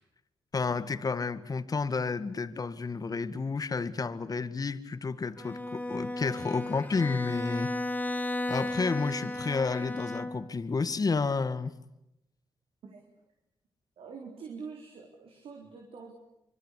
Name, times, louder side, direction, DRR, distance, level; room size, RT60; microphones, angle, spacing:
voice 1, 0.5-7.7 8.5-11.7, left 4 dB, 40° left, 1.8 m, -31 dB
Bowed string instrument, 5.4-10.7, left 1 dB, 15° left, 2.1 m, -34 dB
voice 2, 14.0-16.1, right 5 dB, 85° right, 4.0 m, -45 dB
25.5 x 24.0 x 8.4 m
cardioid pair, 70°, 9 cm